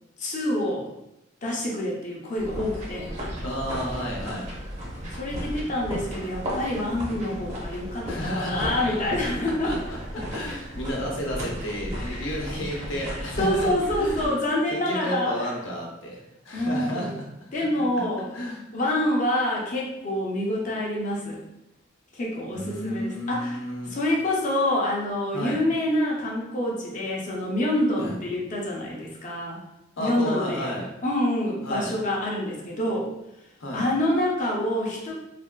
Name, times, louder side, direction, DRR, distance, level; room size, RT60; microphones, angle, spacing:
voice 1, 0.2-0.9 1.4-3.1 5.1-9.7 10.1-10.2 11.9-12.3 13.0-15.5 16.5-17.1 17.5-18.3 18.7-21.4 22.1-23.6 23.9-29.6 30.0-33.1 33.7-35.1, left 1 dB, 40° left, -2 dB, 0.6 m, -27 dB
sound 1, 2.4-14.3, equal, 35° right, 0.7 m, -35 dB
voice 2, 3.4-4.5 8.1-9.1 9.4-16.2 16.4-17.3 18.0-18.1 18.3-18.6 22.5-23.9 25.3-25.6 28.0-28.2 30.0-30.9 31.6-31.9 33.6-33.9, equal, 80° left, -2 dB, 0.8 m, -32 dB
3.3 x 2.3 x 2.2 m, 0.88 s
head